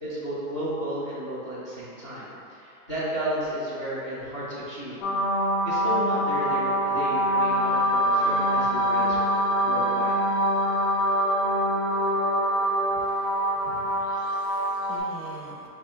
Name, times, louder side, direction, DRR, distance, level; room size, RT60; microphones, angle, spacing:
voice 1, 0.0-5.0 5.6-10.2, right 1 dB, 25° left, -8 dB, 0.4 m, -33 dB
sound 1, 5.0-15.0, equal, 65° left, 1.0 m, -24 dB
voice 2, 13.0-15.7, right 3 dB, 45° right, -1 dB, 0.4 m, -45 dB
3.4 x 2.7 x 4.2 m, 2.6 s
hypercardioid pair, 155°, 46 cm